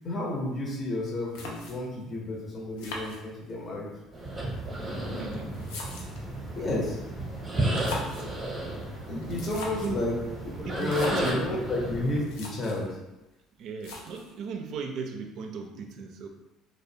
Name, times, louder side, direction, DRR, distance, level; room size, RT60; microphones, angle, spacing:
voice 1, 0.0-3.9 6.6-7.0 9.1-10.2 10.6-12.9, left 2 dB, 35° left, -3 dB, 0.7 m, -31 dB
sound 1, 1.3-2.0 2.8-3.7 4.6-6.3 7.6-8.4 9.2-10.0 10.8-11.4 11.9-12.0 12.2-12.9 13.8-14.4, left 2 dB, 90° left, 0.4 m, -40 dB
sound 2, 4.1-12.2, right 1 dB, 20° right, 0.7 m, -33 dB
voice 2, 5.2-5.5 6.5-6.7 7.7-8.3 9.7-10.0 10.7-11.7 13.6-16.3, right 5 dB, 60° right, 4 dB, 0.3 m, -37 dB
2.3 x 2.0 x 2.7 m, 0.99 s
cardioid pair, 105°, 0 cm